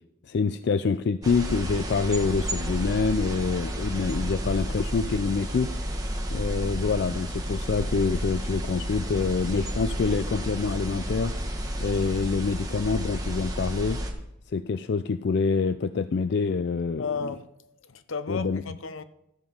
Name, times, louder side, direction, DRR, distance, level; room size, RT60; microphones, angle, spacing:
voice 1, 0.3-5.7 6.3-11.3 11.8-14.0 14.5-17.3 18.3-18.6, left 4 dB, 55° left, 0.4 m, -26 dB
sound 1, 1.2-14.1, equal, 20° right, 1.3 m, -31 dB
voice 2, 17.0-19.0, left 5 dB, 80° left, 0.8 m, -34 dB
13.0 x 7.1 x 5.6 m
head